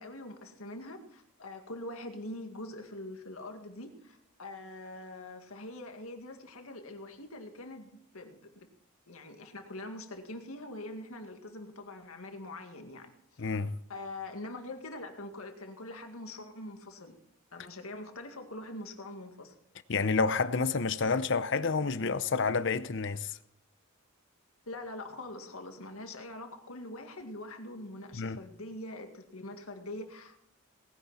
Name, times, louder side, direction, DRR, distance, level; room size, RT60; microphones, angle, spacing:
voice 1, 0.0-8.7 9.1-13.1 13.9-17.2 17.5-19.5 24.7-30.4, left 1 dB, 80° left, 2.1 m, -43 dB
voice 2, 13.4-13.8 19.9-23.4 28.1-28.4, left 4 dB, 60° left, 0.7 m, -29 dB
19.0 x 10.5 x 4.2 m
head